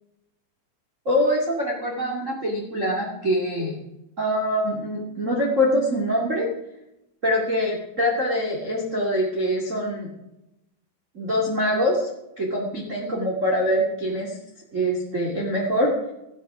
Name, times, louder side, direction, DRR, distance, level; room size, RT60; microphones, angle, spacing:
voice 1, 1.0-3.7 4.2-6.5 7.2-10.1 11.1-12.1 12.4-14.4 14.7-15.9, equal, 35° right, -2 dB, 1.3 m, -24 dB
14.5 x 11.5 x 5.0 m, 0.88 s
omnidirectional pair, 5.5 m